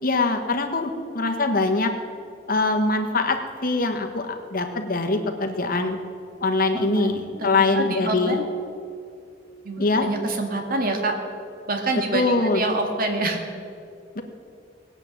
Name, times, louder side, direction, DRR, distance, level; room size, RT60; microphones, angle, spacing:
voice 1, 0.0-1.9 2.5-6.0 6.4-8.4 9.8-10.1 12.1-12.6 14.1-14.2, left 3 dB, 50° left, 5 dB, 1.5 m, -23 dB
voice 2, 6.7-7.1 7.5-8.4 9.6-11.1 11.7-13.4, right 2 dB, 50° right, 3 dB, 2.0 m, -26 dB
19.5 x 8.9 x 7.4 m, 2.4 s
head